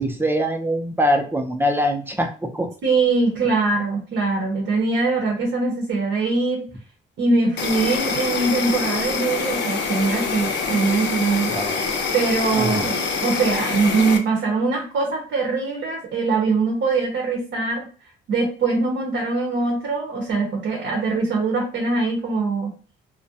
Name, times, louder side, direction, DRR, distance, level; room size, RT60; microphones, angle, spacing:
voice 1, 0.0-2.7 11.5-11.8 12.5-12.9, equal, 10° right, 4 dB, 0.5 m, -23 dB
voice 2, 2.8-6.6 7.2-11.5 12.1-17.9 18.3-22.7, right 3 dB, 70° right, 0 dB, 0.8 m, -22 dB
Insect, 7.6-14.2, left 4 dB, 65° left, 0.6 m, -25 dB
2.4 x 2.1 x 2.7 m, 0.38 s
cardioid pair, 90°, 20 cm